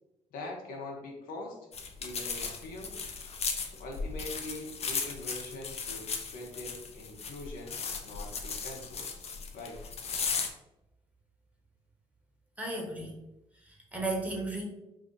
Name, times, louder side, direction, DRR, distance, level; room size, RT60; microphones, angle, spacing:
voice 1, 0.3-1.6 2.0-2.9 3.6-9.1 9.5-9.8, left 2 dB, 75° left, -1 dB, 0.9 m, -43 dB
sound 1, 1.7-10.5, left 5 dB, 45° left, 0.6 m, -36 dB
voice 2, 12.6-13.1 13.7-14.6, right 2 dB, 10° right, -1 dB, 1.2 m, -34 dB
2.8 x 2.4 x 3.8 m, 0.92 s
supercardioid pair, 60°, 15 cm